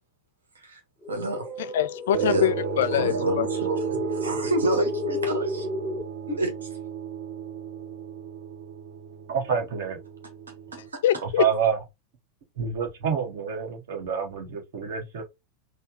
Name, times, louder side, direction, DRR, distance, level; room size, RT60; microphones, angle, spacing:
sound 1, 1.0-6.0, left 2 dB, 5° right, 0.8 m, -32 dB
voice 1, 1.1-1.5 2.2-2.5 2.9-5.7 6.3-6.7 10.7-11.0, right 1 dB, 75° right, 1.5 m, -29 dB
voice 2, 1.6-3.5 11.0-11.5, left 11 dB, 55° left, 0.4 m, -24 dB
sound 2, 2.1-10.9, right 9 dB, 35° right, 1.0 m, -34 dB
voice 3, 9.3-10.0 11.4-11.8 12.6-15.2, right 7 dB, 55° right, 1.7 m, -27 dB
4.3 x 2.3 x 4.0 m
figure-of-eight pair, 90°, 0 cm